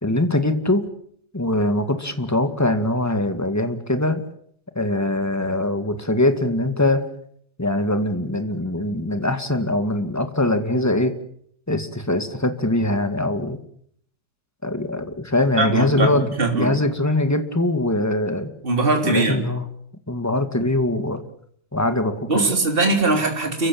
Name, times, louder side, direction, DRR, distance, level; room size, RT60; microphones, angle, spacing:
voice 1, 0.0-0.8 1.3-4.2 4.8-7.0 7.6-11.1 11.7-13.6 14.6-16.3 16.5-18.5 19.0-19.6 20.1-21.2 21.7-22.4, left 1 dB, 10° left, 8 dB, 2.2 m, -22 dB
voice 2, 15.6-16.8 18.6-19.5 22.3-23.7, right 3 dB, 30° right, 3 dB, 3.7 m, -21 dB
29.5 x 15.5 x 8.8 m, 0.66 s
omnidirectional pair, 1.8 m